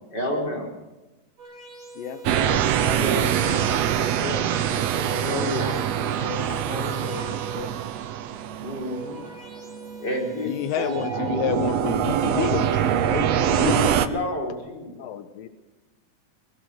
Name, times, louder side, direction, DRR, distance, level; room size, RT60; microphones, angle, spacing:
voice 1, 0.1-0.8 3.0-3.3 5.3-5.7 8.6-9.2 10.0-11.0 13.4-15.0, left 1 dB, 30° left, -1 dB, 5.6 m, -29 dB
sound 1, 1.4-4.0 4.7-7.9 8.6-11.4, right 2 dB, 50° right, 7.1 m, -43 dB
voice 2, 2.0-7.8 10.9-11.4 12.2-13.2 15.0-15.5, left 8 dB, 85° left, 10 dB, 2.8 m, -38 dB
sound 2, 2.2-10.4 10.8-14.1, right 10 dB, 70° right, 1.6 m, -24 dB
voice 3, 10.5-13.8, left 11 dB, 70° left, 10 dB, 1.8 m, -29 dB
22.5 x 18.5 x 6.5 m, 1.1 s
omnidirectional pair, 3.9 m